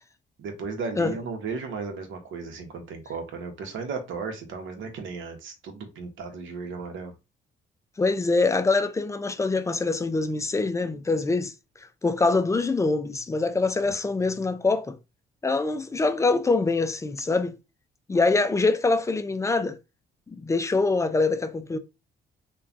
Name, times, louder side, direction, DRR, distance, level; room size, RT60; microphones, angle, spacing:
voice 1, 0.4-7.1, right 4 dB, 75° right, 0.8 m, -35 dB
voice 2, 8.0-11.5 12.0-15.0 15.4-17.6 18.1-19.8 20.3-21.8, left 3 dB, 15° left, 0.3 m, -24 dB
3.1 x 2.2 x 2.4 m
cardioid pair, 90°, 20 cm